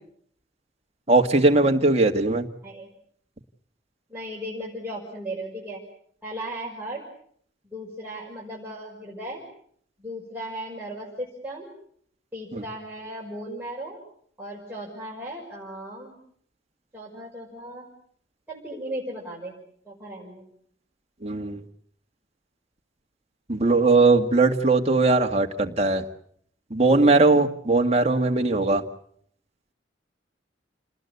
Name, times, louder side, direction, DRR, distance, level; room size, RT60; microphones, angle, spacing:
voice 1, 1.1-2.5 12.5-12.6 21.2-21.6 23.5-26.0 26.7-28.8, right 3 dB, 35° right, 3 dB, 1.9 m, -20 dB
voice 2, 4.1-5.8 6.2-7.0 7.6-9.4 10.0-11.7 12.3-14.0 14.4-16.2 16.9-17.9 18.5-19.5 19.9-20.4, right 1 dB, 10° right, -5 dB, 5.7 m, -36 dB
28.5 x 20.0 x 8.2 m, 0.65 s
head